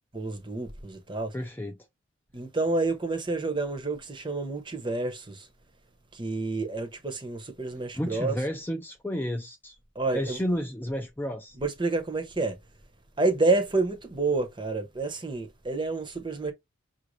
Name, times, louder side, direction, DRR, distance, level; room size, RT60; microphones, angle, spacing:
voice 1, 0.1-1.3 2.3-5.5 6.1-8.4 10.0-10.4 11.6-12.6 13.2-16.5, right 3 dB, 25° right, 0.8 m, -29 dB
voice 2, 1.3-1.8 7.9-9.7 10.1-11.6, equal, 10° left, 0.3 m, -31 dB
5.5 x 2.6 x 3.1 m
head